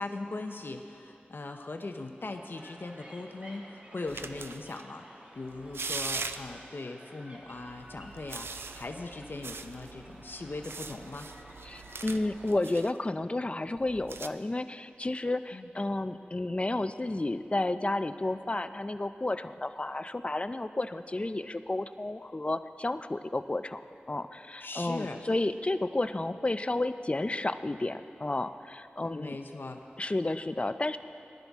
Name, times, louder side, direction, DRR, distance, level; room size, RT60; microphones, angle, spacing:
voice 1, 0.0-11.3 15.5-15.7 24.6-25.2 29.0-29.8, left 2 dB, 65° left, 5 dB, 0.7 m, -40 dB
sound 1, 2.5-12.5, equal, 40° right, 2.2 m, -52 dB
sound 2, 4.1-4.8 5.5-6.7 7.6-12.9 13.8-14.3, right 4 dB, 85° right, 0.4 m, -41 dB
voice 2, 11.7-23.8 24.1-29.4 30.0-31.0, left 2 dB, 30° left, 11 dB, 0.4 m, -31 dB
19.0 x 11.5 x 3.6 m, 2.7 s
wide cardioid pair, 60°, 4 cm